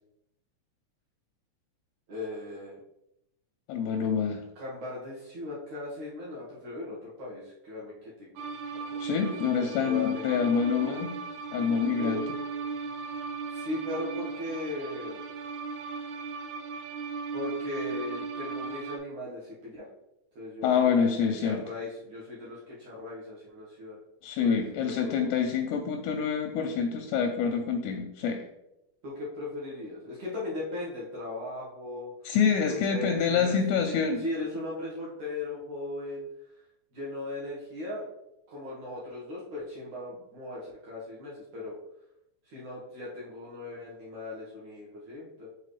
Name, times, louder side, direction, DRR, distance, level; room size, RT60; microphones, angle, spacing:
voice 1, 2.1-2.8 4.6-8.1 8.7-10.5 12.0-12.3 13.5-15.3 17.3-19.9 20.4-24.0 24.4-25.4 29.0-32.1 32.6-33.5 34.2-36.3 36.9-38.1 38.5-41.8 42.5-45.5, left 2 dB, 60° right, -7 dB, 2.1 m, -38 dB
voice 2, 3.7-4.4 9.0-11.2 11.5-12.2 20.6-21.6 24.2-28.5 32.2-34.2, left 6 dB, 85° left, 4 dB, 2.4 m, -26 dB
sound 1, 8.4-19.0, right 4 dB, 80° right, 2.5 m, -37 dB
7.5 x 4.1 x 3.2 m, 0.86 s
omnidirectional pair, 5.1 m